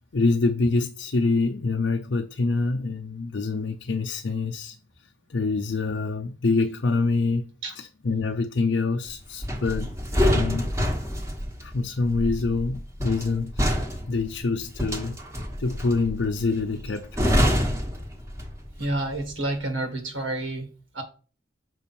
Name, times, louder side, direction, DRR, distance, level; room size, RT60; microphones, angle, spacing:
voice 1, 0.1-4.8 5.3-7.5 7.8-9.9 10.2-10.7 11.6-15.2 15.6-17.4, left 3 dB, 65° left, 0.6 m, -26 dB
sound 1, 9.4-18.8 19.1-19.3, equal, 15° right, 1.2 m, -26 dB
voice 2, 18.8-21.0, right 2 dB, 80° right, 1.9 m, -29 dB
6.2 x 5.3 x 4.4 m
head